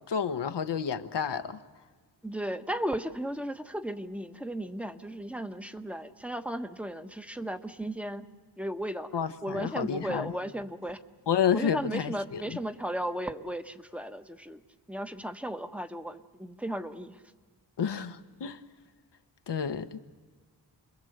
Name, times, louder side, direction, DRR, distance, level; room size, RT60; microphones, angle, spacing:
voice 1, 0.1-1.6 9.1-10.3 11.3-12.6 17.8-18.6 19.5-20.0, left 7 dB, 85° left, 1.1 m, -30 dB
voice 2, 2.2-8.3 8.6-11.0 11.5-14.6 14.9-17.2, right 1 dB, 5° right, 1.2 m, -35 dB
29.5 x 22.0 x 8.0 m
wide cardioid pair, 90°, 41 cm